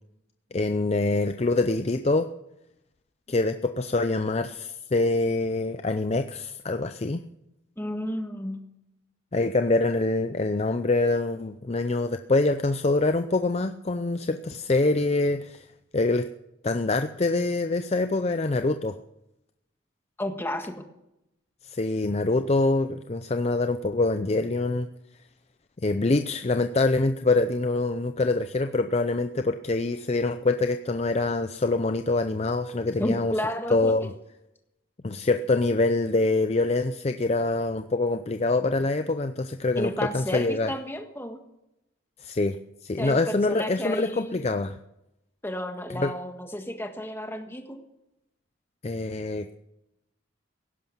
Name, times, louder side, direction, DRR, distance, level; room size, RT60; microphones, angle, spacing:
voice 1, 0.5-2.3 3.3-7.2 9.3-15.6 15.9-16.3 16.6-18.9 21.6-24.9 25.8-33.3 33.7-34.1 35.0-40.7 42.2-42.6 42.8-44.8 46.0-46.1 48.8-49.6, left 2 dB, 30° left, 8 dB, 0.5 m, -25 dB
voice 2, 7.8-8.6 20.2-20.7 33.0-34.1 39.8-41.4 43.0-44.5 45.4-47.8, left 1 dB, 10° left, 5 dB, 1.6 m, -32 dB
16.0 x 11.5 x 7.2 m, 0.88 s
head